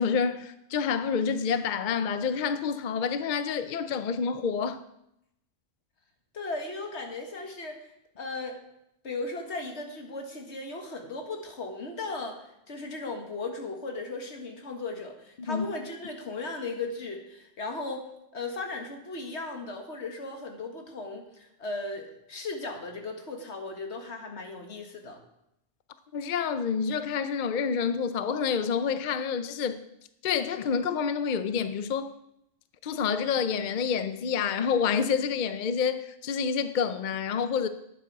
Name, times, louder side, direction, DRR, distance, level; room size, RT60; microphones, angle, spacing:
voice 1, 0.0-4.8 15.5-15.7 26.1-29.8 30.2-32.1 32.8-37.7, left 6 dB, 55° left, 0.6 m, -28 dB
voice 2, 6.3-7.8 8.2-8.6 9.0-18.0 18.3-25.2, left 3 dB, 80° left, 1.9 m, -36 dB
11.0 x 9.1 x 4.7 m
omnidirectional pair, 1.1 m